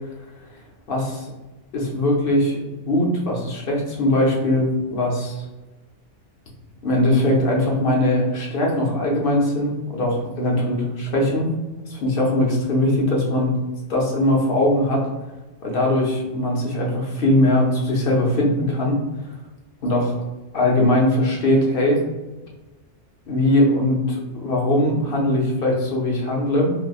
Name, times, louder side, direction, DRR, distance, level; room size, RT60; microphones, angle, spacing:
voice 1, 0.9-1.3 1.7-2.6 2.8-5.4 6.8-11.5 11.9-13.6 13.9-15.0 15.6-19.0 19.8-20.1 20.5-22.0 23.3-26.7, left 1 dB, 55° left, -1 dB, 1.0 m, -20 dB
4.7 x 2.2 x 2.3 m, 1.1 s
omnidirectional pair, 1.2 m